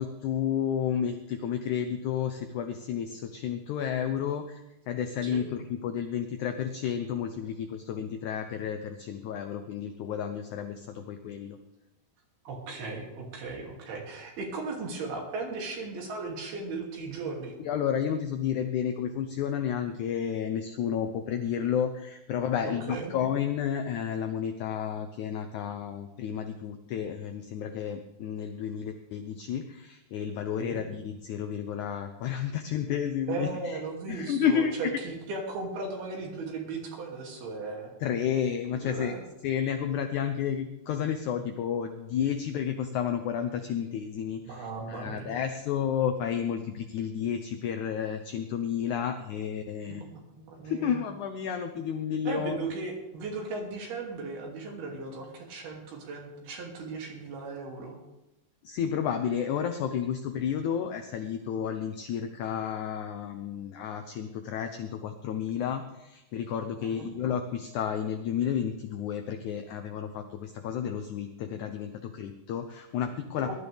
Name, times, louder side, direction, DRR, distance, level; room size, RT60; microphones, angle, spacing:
voice 1, 0.0-4.6 4.9-11.6 17.6-33.8 34.1-34.9 38.0-39.1 39.4-50.0 50.6-52.6 58.6-73.5, left 8 dB, 85° left, 7 dB, 1.7 m, -31 dB
voice 2, 12.5-17.5 22.6-23.1 30.6-30.8 33.3-37.9 38.7-39.2 44.5-45.4 49.9-50.1 50.4-51.0 52.3-58.0 66.8-67.1 73.5-73.6, right 3 dB, 80° right, -1 dB, 4.6 m, -37 dB
20.0 x 12.0 x 3.5 m, 0.95 s
omnidirectional pair, 4.4 m